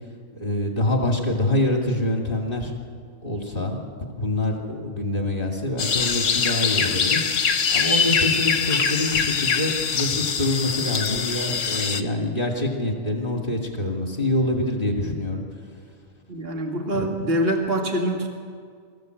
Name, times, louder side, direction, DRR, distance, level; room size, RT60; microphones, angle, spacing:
voice 1, 0.3-2.7 3.2-3.8 4.2-7.2 7.7-15.4 16.9-17.1, left 1 dB, 40° left, 0 dB, 2.5 m, -25 dB
sound 1, 5.8-12.0, left 6 dB, 65° left, 1.4 m, -23 dB
voice 2, 16.3-18.3, right 1 dB, 45° right, 1 dB, 2.0 m, -25 dB
24.0 x 15.0 x 7.9 m, 2.1 s
omnidirectional pair, 1.5 m